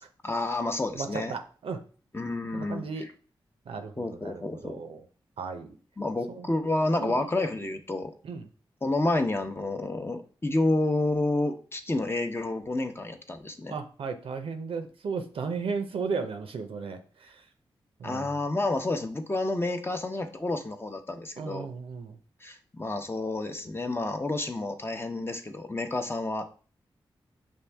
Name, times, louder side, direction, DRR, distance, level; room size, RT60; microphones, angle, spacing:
voice 1, 0.2-1.3 2.1-2.8 4.0-4.8 6.0-8.1 8.8-13.7 18.0-21.7 22.4-26.4, left 2 dB, 25° left, 6 dB, 0.7 m, -29 dB
voice 2, 0.9-1.8 2.5-3.1 3.7-5.0 5.4-5.8 6.3-6.5 7.0-7.3 8.2-8.5 13.7-17.4 18.0-18.4 21.4-22.2, right 5 dB, 75° right, 6 dB, 0.6 m, -35 dB
5.4 x 2.6 x 3.4 m, 0.41 s
cardioid pair, 45°, 10 cm